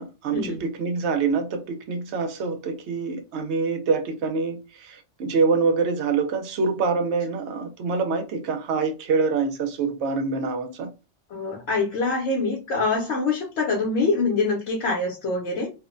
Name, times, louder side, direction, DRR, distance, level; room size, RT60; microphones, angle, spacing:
voice 1, 0.0-10.9, right 4 dB, 70° right, 0.8 m, -25 dB
voice 2, 11.3-15.7, left 3 dB, 75° left, 1.0 m, -25 dB
2.5 x 2.1 x 2.4 m
omnidirectional pair, 1.3 m